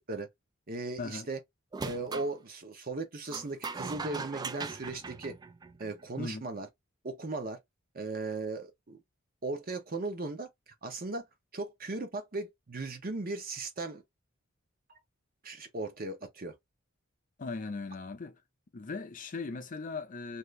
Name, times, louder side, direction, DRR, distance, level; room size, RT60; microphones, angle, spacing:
voice 1, 0.7-1.4 1.8-5.3 5.8-6.7 7.0-7.6 7.9-9.0 9.4-10.5 10.8-11.3 11.5-14.0 15.4-16.5, right 3 dB, 45° right, 0.8 m, -37 dB
sound 1, 1.7-2.3 3.3-6.0, right 4 dB, 20° right, 0.3 m, -39 dB
voice 2, 6.2-6.5 17.4-18.4 18.7-20.4, left 3 dB, 40° left, 0.5 m, -38 dB
2.7 x 2.5 x 3.2 m
head